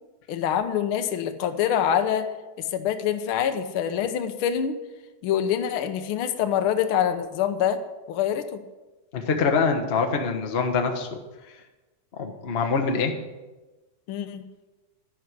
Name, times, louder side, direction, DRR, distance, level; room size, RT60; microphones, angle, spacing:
voice 1, 0.3-2.3 2.6-4.8 5.2-7.8 8.1-8.6 14.1-14.4, left 9 dB, 65° left, 8 dB, 1.4 m, -25 dB
voice 2, 9.1-11.1 12.2-13.1, left 5 dB, 50° left, 4 dB, 0.7 m, -24 dB
11.5 x 11.0 x 6.2 m, 1.1 s
omnidirectional pair, 3.4 m